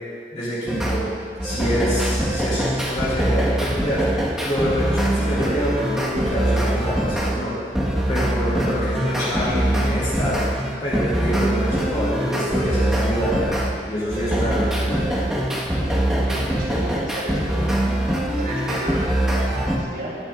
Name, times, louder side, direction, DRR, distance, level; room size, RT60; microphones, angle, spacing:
voice 1, 0.3-1.1 1.4-15.0, equal, 40° left, -9 dB, 2.9 m, -26 dB
sound 1, 0.7-1.0 1.4-7.4 7.7-13.7 14.1-19.8, right 1 dB, 5° right, 1.5 m, -23 dB
voice 2, 16.3-18.0 18.3-20.2, equal, 55° right, -8 dB, 3.5 m, -33 dB
20.0 x 10.5 x 2.5 m, 2.2 s
head